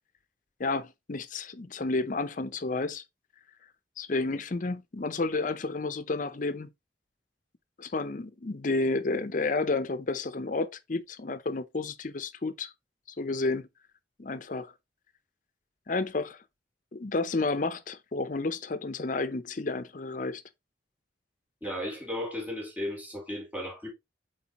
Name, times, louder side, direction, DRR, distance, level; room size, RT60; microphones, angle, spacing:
voice 1, 0.6-3.0 4.0-6.7 7.8-12.7 13.2-13.7 14.2-14.7 15.9-16.4 16.9-20.4, left 3 dB, 45° left, 0.6 m, -31 dB
voice 2, 21.6-23.9, left 1 dB, 10° right, 2.2 m, -35 dB
8.3 x 3.9 x 2.9 m
head